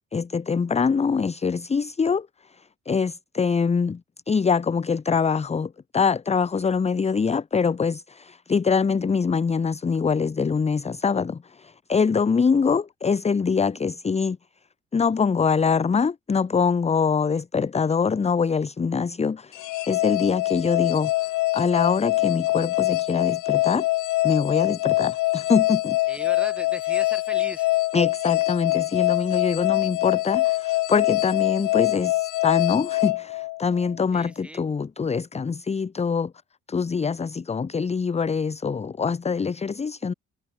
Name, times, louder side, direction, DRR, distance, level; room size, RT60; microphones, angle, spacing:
voice 1, 0.0-4.0 4.3-14.4 14.9-23.9 24.2-26.0 27.9-36.3 36.7-40.1, left 5 dB, 20° left, 0.7 m, -24 dB
sound 1, 19.5-33.9, left 18 dB, 90° left, 0.8 m, -24 dB
voice 2, 26.1-27.7 34.1-34.6, right 1 dB, 5° right, 2.6 m, -38 dB
cardioid pair, 90°, 30 cm